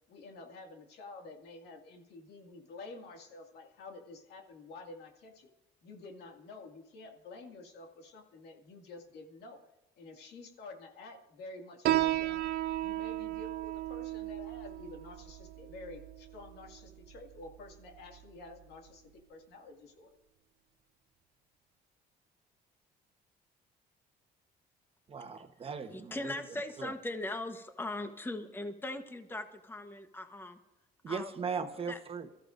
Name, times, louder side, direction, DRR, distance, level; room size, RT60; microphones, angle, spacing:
voice 1, 0.1-5.5 5.8-9.6 10.0-12.4 12.8-20.2, left 3 dB, 75° left, 3 dB, 2.2 m, -50 dB
Piano, 11.9-18.9, right 15 dB, 65° right, 0.5 m, -35 dB
voice 2, 25.1-26.3 26.8-26.9 31.0-32.3, right 5 dB, 35° right, 6 dB, 1.1 m, -38 dB
voice 3, 25.9-30.6 31.1-31.3 31.9-32.0, left 2 dB, 15° left, 7 dB, 1.1 m, -39 dB
25.0 x 14.0 x 2.6 m, 0.98 s
cardioid pair, 110°, 17 cm